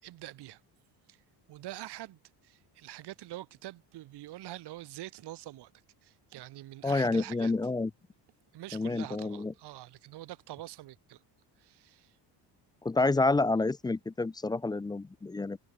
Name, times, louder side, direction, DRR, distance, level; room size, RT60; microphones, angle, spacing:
voice 1, 0.0-0.6 1.1-1.2 1.5-5.7 6.0-7.5 8.5-11.2 11.6-12.2, right 15 dB, 65° right, 6.0 m, -45 dB
voice 2, 6.8-7.9 8.7-9.5 12.8-15.6, left 3 dB, 10° left, 0.5 m, -28 dB
cardioid pair, 150°, 42 cm